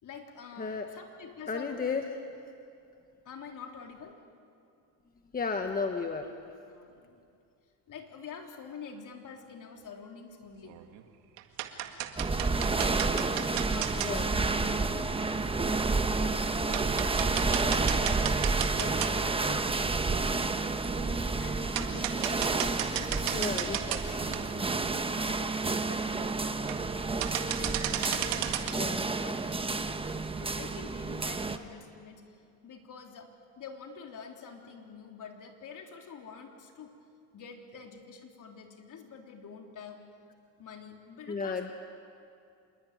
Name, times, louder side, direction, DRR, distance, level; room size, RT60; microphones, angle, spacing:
voice 1, 0.0-2.1 3.3-4.2 6.0-6.1 6.7-7.2 7.9-10.8 13.3-15.9 16.2-18.3 18.7-20.4 21.4-25.5 25.8-26.8 27.3-33.3 33.6-36.9 37.3-40.0 40.6-41.6, left 6 dB, 45° left, 2 dB, 3.7 m, -47 dB
voice 2, 1.5-2.0 5.3-6.3 14.0-14.3 23.3-24.0 28.7-29.0 41.3-41.7, left 4 dB, 20° left, 5 dB, 1.4 m, -33 dB
sound 1, 10.6-11.0 11.4-14.1 15.2-15.3 15.8-15.9 16.3-16.4 16.7-19.4 19.8-19.9 21.2-21.3 21.7-24.0 24.3-24.4 25.0-25.1 25.3-25.4 25.6-25.9 26.5-26.9 27.2-28.8, right 13 dB, 90° right, 2.1 m, -34 dB
sound 2, 12.2-31.6, right 3 dB, 15° right, 1.1 m, -30 dB
27.0 x 22.0 x 9.4 m, 2.5 s
cardioid pair, 120°, 43 cm